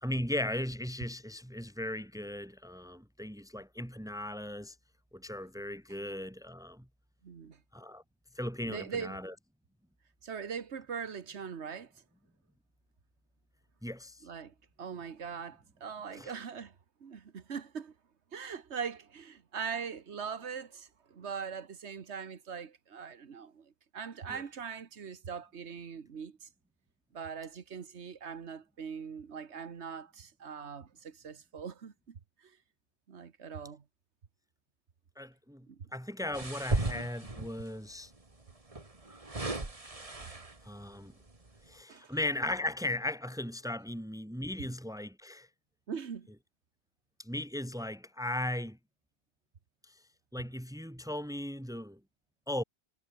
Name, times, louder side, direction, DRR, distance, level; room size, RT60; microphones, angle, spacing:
voice 1, 0.0-4.7 5.1-6.9 7.7-8.0 8.4-9.3 13.8-14.2 16.1-16.3 24.3-24.4 35.2-35.7 35.9-38.1 40.6-41.1 41.7-45.5 47.2-48.8 49.9-50.0 50.3-52.0 52.5-52.6, left 1 dB, 5° right, 2.7 m, -37 dB
voice 2, 7.2-7.6 8.7-9.2 10.2-11.9 14.2-17.9 18.3-26.5 27.1-32.6 33.1-33.8 35.7-35.9 40.2-40.3 41.9-42.2 45.9-46.3, right 6 dB, 85° right, 1.6 m, -41 dB
sound 1, 36.3-37.7 38.7-40.7 41.3-41.5, right 2 dB, 30° right, 2.3 m, -35 dB
omnidirectional pair, 1.1 m